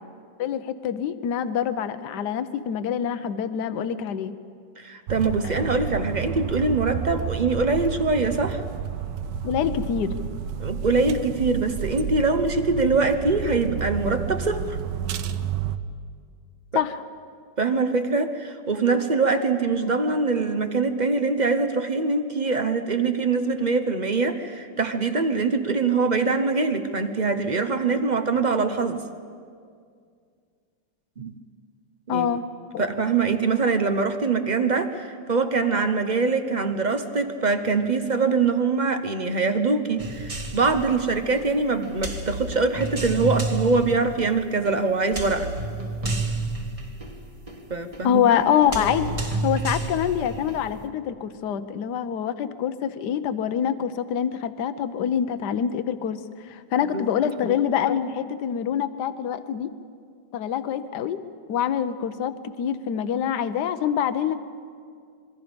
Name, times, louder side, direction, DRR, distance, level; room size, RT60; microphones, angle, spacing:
voice 1, 0.4-4.3 5.4-5.6 9.4-10.1 16.7-17.0 32.1-32.4 32.7-32.9 48.0-56.2 56.5-59.7 60.3-61.2 61.5-64.4, left 9 dB, 65° left, 12 dB, 1.4 m, -25 dB
voice 2, 4.8-8.6 10.6-14.8 17.6-29.0 31.2-31.3 32.1-32.3 32.8-45.5 47.7-48.2 56.9-57.0, right 4 dB, 35° right, 8 dB, 0.7 m, -23 dB
sound 1, 5.1-15.8, right 8 dB, 75° right, 1.4 m, -31 dB
sound 2, 40.0-50.9, right 2 dB, 20° right, 1.3 m, -31 dB
26.5 x 23.0 x 5.2 m, 2.2 s
omnidirectional pair, 2.0 m